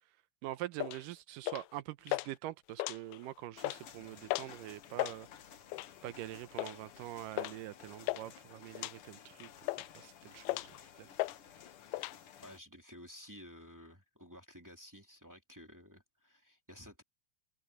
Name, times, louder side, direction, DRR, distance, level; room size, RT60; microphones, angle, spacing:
voice 1, 0.4-5.3 6.0-9.5 9.8-11.1, right 14 dB, 75° right, 2.2 m, -44 dB
sound 1, 0.8-1.0 1.5-1.8 2.1-2.3 2.7-3.3 3.6-3.8 4.3-4.5 4.8-5.2 5.7-6.0 6.6-6.8 7.4-7.6 7.8-8.3 8.8-9.0 9.4-10.0 10.5-10.8 11.2-11.4 11.6-12.2, left 20 dB, 85° left, 2.4 m, -36 dB
sound 2, 3.5-12.6, left 9 dB, 65° left, 1.4 m, -55 dB
voice 2, 12.4-17.0, equal, 5° right, 2.1 m, -53 dB
omnidirectional pair, 4.3 m